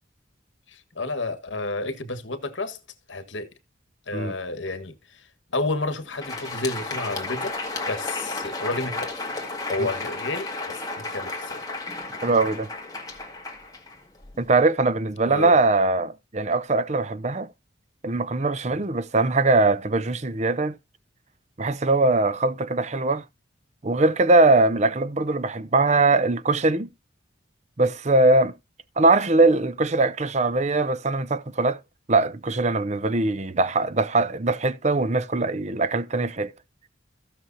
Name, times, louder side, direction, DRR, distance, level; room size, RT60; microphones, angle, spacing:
voice 1, 0.7-2.8 3.1-3.5 4.1-5.3 5.5-7.6 7.9-9.2 9.7-11.6 15.2-15.5 18.7-18.8, left 2 dB, 70° left, 1.5 m, -31 dB
Crowd, 6.0-14.5, left 3 dB, 20° left, 2.1 m, -33 dB
voice 2, 12.2-12.7 14.4-17.5 18.0-20.8 21.6-23.2 23.8-26.9 27.8-28.5 29.0-31.8 32.1-36.5, right 2 dB, 35° right, 0.7 m, -21 dB
15.5 x 6.3 x 2.7 m
head